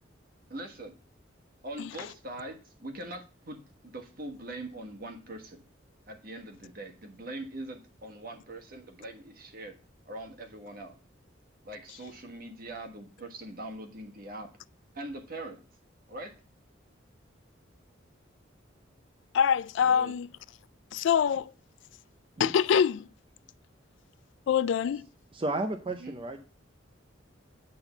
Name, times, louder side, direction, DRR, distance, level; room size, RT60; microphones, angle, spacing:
voice 1, 0.5-0.9 1.6-5.6 6.1-9.7 10.1-10.9 11.6-14.5 14.9-15.6 16.1-16.3 19.8-20.1 26.0-26.2, right 1 dB, 50° right, 1.4 m, -42 dB
voice 2, 19.3-20.3 20.9-21.5 22.4-23.0 24.5-25.1, left 8 dB, 70° left, 0.3 m, -25 dB
voice 3, 25.3-26.4, right 2 dB, 25° right, 0.6 m, -32 dB
8.9 x 3.8 x 7.0 m
head